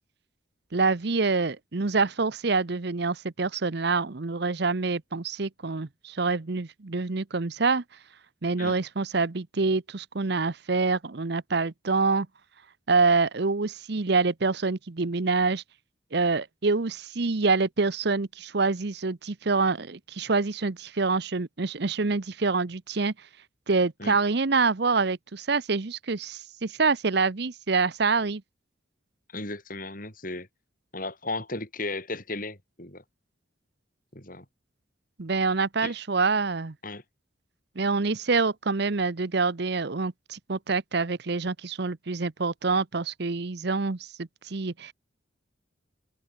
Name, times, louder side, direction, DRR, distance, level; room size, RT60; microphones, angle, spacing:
voice 1, 0.7-7.8 8.4-12.3 12.9-15.6 16.1-23.1 23.7-28.4 35.2-36.7 37.8-44.9, right 4 dB, 55° right, 0.8 m, -26 dB
voice 2, 29.3-30.5 30.9-33.0 34.1-34.4 35.8-35.9 36.8-37.0, left 2 dB, 45° left, 7.8 m, -35 dB
head